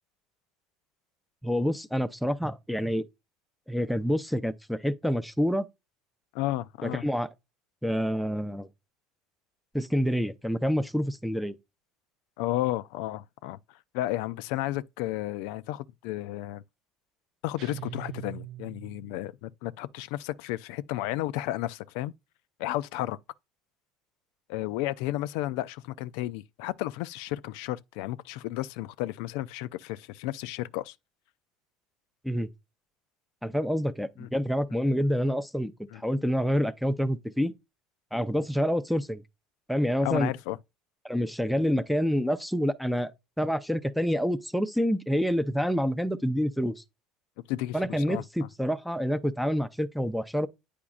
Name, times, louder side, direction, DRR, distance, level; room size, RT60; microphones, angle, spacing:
voice 1, 1.4-3.0 3.7-5.7 6.8-7.3 7.8-8.7 9.7-11.6 32.2-32.5 33.4-37.5 38.1-39.2 39.7-40.3 41.0-43.1 43.4-46.7 47.7-50.5, equal, ahead, 0.5 m, -27 dB
voice 2, 6.3-7.0 12.4-13.6 13.9-16.6 17.4-22.1 22.6-23.2 24.5-30.9 34.2-34.3 35.9-36.0 40.0-40.6 47.5-48.2, left 15 dB, 75° left, 0.3 m, -32 dB
sound 1, 17.6-19.3, right 13 dB, 60° right, 0.5 m, -42 dB
8.5 x 5.0 x 2.3 m
supercardioid pair, 110°, 0 cm